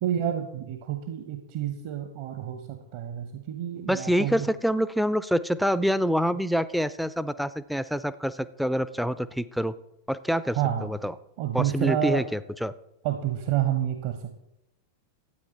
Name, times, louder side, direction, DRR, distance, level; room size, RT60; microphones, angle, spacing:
voice 1, 0.0-4.5 10.5-10.9 11.4-12.2 13.0-14.4, right 10 dB, 50° right, 6 dB, 1.0 m, -29 dB
voice 2, 3.9-9.7 10.1-11.1 11.5-12.7, equal, ahead, 15 dB, 0.5 m, -26 dB
13.0 x 8.9 x 4.3 m, 0.86 s
figure-of-eight pair, 90°, 0 cm